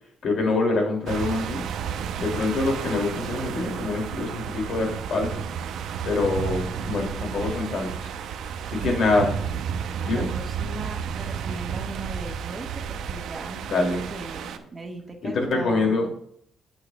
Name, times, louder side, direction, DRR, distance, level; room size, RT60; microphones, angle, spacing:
voice 1, 0.2-1.7 2.2-5.4 6.0-8.1 8.4-9.3 10.0-10.3 13.7-14.1 15.2-16.1, left 3 dB, 65° left, 1 dB, 2.6 m, -25 dB
sound 1, 1.1-14.6, right 7 dB, 80° right, 0.6 m, -32 dB
voice 2, 10.0-16.0, right 2 dB, 30° right, 2 dB, 1.5 m, -39 dB
8.7 x 8.0 x 2.3 m, 0.66 s
cardioid pair, 90°, 0 cm